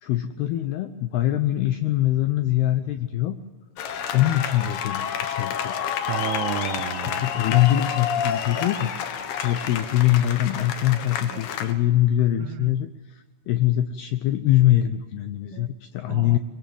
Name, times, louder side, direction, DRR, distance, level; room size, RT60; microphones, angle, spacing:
voice 1, 0.0-3.4 4.1-5.8 7.2-16.4, left 13 dB, 85° left, 9 dB, 2.3 m, -23 dB
sound 1, 3.8-11.7, left 8 dB, 65° left, 3.0 m, -29 dB
voice 2, 6.1-7.3 11.3-11.4 12.4-12.7 15.5-15.7 16.1-16.4, right 13 dB, 85° right, 8 dB, 3.7 m, -32 dB
24.5 x 23.0 x 7.8 m, 1.3 s
omnidirectional pair, 5.8 m